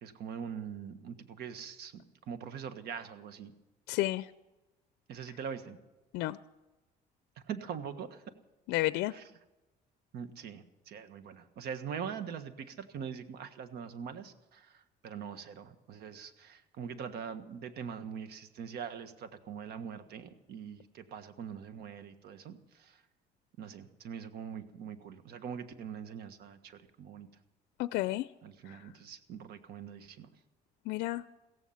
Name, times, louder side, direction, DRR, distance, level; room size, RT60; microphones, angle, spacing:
voice 1, 0.0-3.5 5.1-5.8 7.5-8.2 9.1-9.3 10.1-23.0 23.6-27.3 28.4-30.3, right 7 dB, 70° right, 10 dB, 1.5 m, -43 dB
voice 2, 3.9-4.3 6.1-6.4 8.7-9.1 27.8-28.3 28.7-28.8 30.9-31.2, left 17 dB, 85° left, 14 dB, 0.5 m, -31 dB
16.5 x 14.5 x 5.7 m, 1.0 s
cardioid pair, 110°, 17 cm